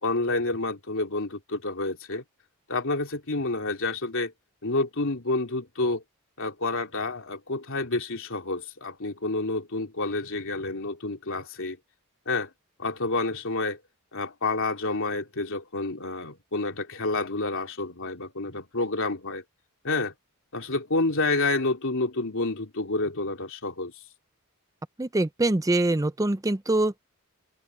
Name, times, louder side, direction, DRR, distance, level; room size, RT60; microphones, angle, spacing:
voice 1, 0.0-2.2 2.7-4.3 4.6-6.0 6.4-11.8 12.2-12.5 12.8-13.8 14.1-19.4 19.8-20.1 20.5-23.9, left 2 dB, 65° left, 3.4 m, -29 dB
voice 2, 25.0-27.0, right 2 dB, 15° right, 0.5 m, -24 dB
open air
head